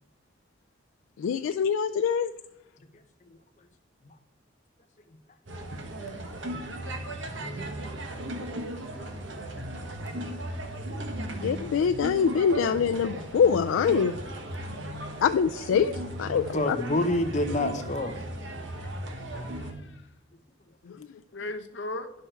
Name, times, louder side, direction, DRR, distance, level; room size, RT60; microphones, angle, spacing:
voice 1, 1.2-2.3 11.4-14.1 15.2-16.8 20.9-21.0, left 6 dB, 90° left, 0.3 m, -24 dB
sound 1, 5.5-19.7, right 1 dB, 75° right, 1.3 m, -36 dB
voice 2, 7.0-7.9 8.6-8.7 9.7-10.4 16.5-18.2, left 1 dB, 35° left, 0.8 m, -30 dB
voice 3, 18.8-20.0 21.3-22.1, left 2 dB, 65° left, 0.8 m, -39 dB
10.0 x 6.4 x 4.4 m
head